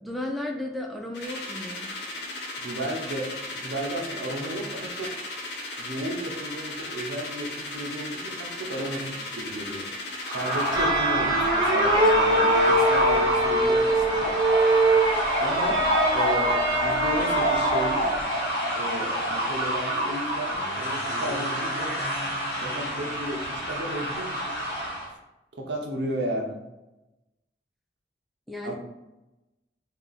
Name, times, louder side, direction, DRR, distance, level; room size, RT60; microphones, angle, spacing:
voice 1, 0.0-1.9 28.5-28.7, left 1 dB, ahead, 1 dB, 0.3 m, -34 dB
sound 1, 1.1-10.9, left 2 dB, 80° left, 0.8 m, -36 dB
voice 2, 2.6-5.2 5.8-9.8 10.3-14.4 15.4-15.8 16.1-18.1 18.7-22.0 22.6-24.6 25.5-26.6 28.6-28.7, right 1 dB, 85° right, 1 dB, 0.9 m, -33 dB
sound 2, 10.2-25.1, equal, 60° left, 1.4 m, -27 dB
sound 3, 10.7-18.2, right 1 dB, 25° right, 0.7 m, -23 dB
3.5 x 2.9 x 4.0 m, 0.98 s
head